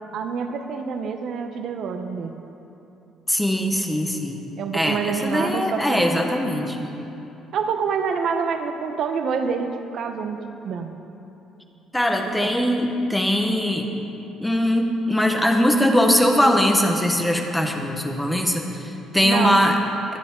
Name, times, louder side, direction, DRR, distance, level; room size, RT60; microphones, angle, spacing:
voice 1, 0.1-2.4 4.6-6.1 7.5-10.4 10.6-10.9 12.2-12.5 19.2-19.7, right 6 dB, 60° right, 6 dB, 0.9 m, -27 dB
voice 2, 3.3-4.4 4.7-6.9 11.9-13.9 14.4-19.8, equal, 5° left, 3 dB, 1.3 m, -21 dB
22.5 x 10.0 x 3.9 m, 3.0 s
cardioid pair, 115°, 0 cm